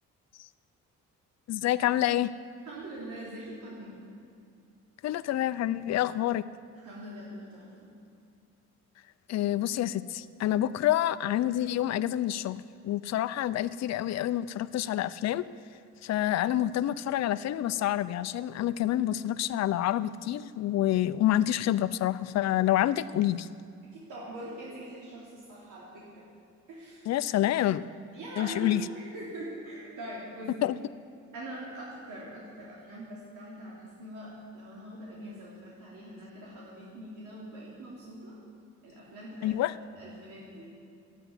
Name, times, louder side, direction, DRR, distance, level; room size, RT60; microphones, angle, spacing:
voice 1, 1.5-2.3 5.0-6.4 9.3-15.5 16.0-23.5 27.1-27.9 28.4-28.8 30.6-30.8 39.4-39.7, left 13 dB, 60° left, 14 dB, 0.5 m, -28 dB
voice 2, 2.6-4.0 6.7-7.9 10.5-10.6 23.9-26.3 26.7-27.2 28.1-30.5 31.3-38.4 38.8-39.5 39.9-40.7, right 1 dB, 80° right, -6 dB, 3.4 m, -43 dB
13.0 x 9.2 x 9.4 m, 2.4 s
cardioid pair, 90°, 30 cm